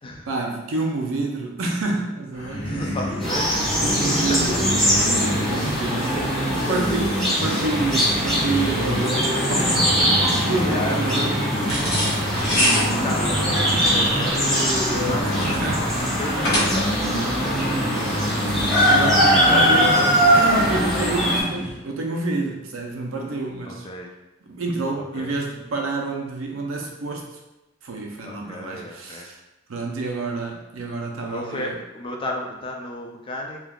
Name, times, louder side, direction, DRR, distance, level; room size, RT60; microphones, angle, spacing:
voice 1, 0.3-3.0 3.8-4.9 5.2-6.2 6.7-7.1 7.4-11.4 11.7-12.4 13.8-14.0 14.8-16.1 18.9-19.9 20.3-23.9 24.5-27.3 27.8-29.4 29.7-31.7, right 3 dB, 85° right, 1 dB, 0.5 m, -28 dB
sound 1, 2.3-21.8, equal, 80° left, 1.4 m, -28 dB
voice 2, 2.6-3.6 4.3-4.4 6.4-7.2 10.5-11.3 12.4-13.5 13.9-14.6 15.1-18.4 19.0-20.1 23.6-24.1 25.0-25.3 28.2-29.3 31.2-33.6, left 1 dB, 25° left, 1 dB, 0.4 m, -33 dB
sound 2, 3.2-21.4, equal, ahead, 0.8 m, -22 dB
sound 3, 11.6-17.1, equal, 55° left, 1.0 m, -25 dB
3.4 x 2.3 x 2.3 m, 0.97 s
head